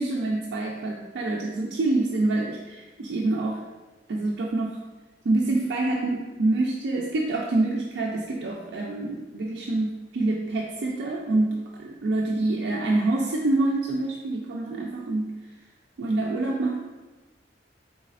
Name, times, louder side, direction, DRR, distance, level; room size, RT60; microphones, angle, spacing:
voice 1, 0.0-3.6 4.1-4.8 5.2-15.3 16.0-16.8, right 2 dB, 80° right, -1 dB, 0.4 m, -26 dB
4.1 x 4.0 x 2.4 m, 1.2 s
head